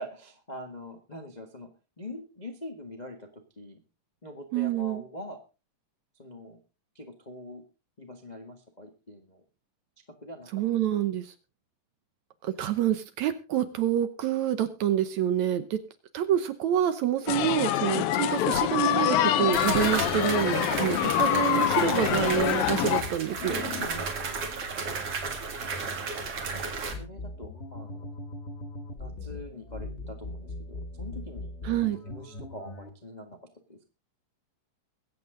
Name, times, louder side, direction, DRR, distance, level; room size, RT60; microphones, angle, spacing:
voice 1, 0.0-1.7 2.0-3.8 4.2-5.4 6.1-6.6 6.9-7.6 8.0-9.4 10.2-10.5 20.8-20.9 23.8-24.5 25.7-25.8 26.5-26.7 27.0-28.1 28.9-33.4 33.7-33.8, left 1 dB, 70° left, 4 dB, 0.4 m, -44 dB
voice 2, 4.5-5.0 10.5-11.3 12.4-15.8 16.1-23.6 31.7-32.0, right 10 dB, 70° right, 11 dB, 1.9 m, -27 dB
sound 1, 17.3-23.0, left 12 dB, 85° left, 2.7 m, -25 dB
sound 2, 18.5-18.6 19.5-26.9, right 4 dB, 45° right, 2.7 m, -33 dB
sound 3, 21.6-32.9, left 2 dB, 40° left, 0.9 m, -41 dB
22.0 x 8.4 x 3.9 m, 0.31 s
omnidirectional pair, 4.0 m